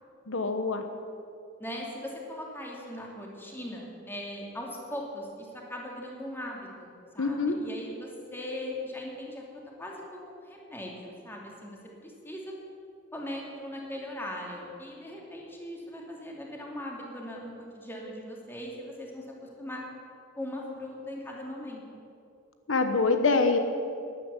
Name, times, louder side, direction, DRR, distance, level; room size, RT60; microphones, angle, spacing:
voice 1, 0.3-0.8 7.2-7.6 22.7-23.6, left 4 dB, 85° left, 7 dB, 1.1 m, -25 dB
voice 2, 1.6-6.9 7.1-12.5 13.1-19.8 20.4-21.8, left 1 dB, 10° left, -2 dB, 2.6 m, -39 dB
12.5 x 11.0 x 8.2 m, 2.5 s
head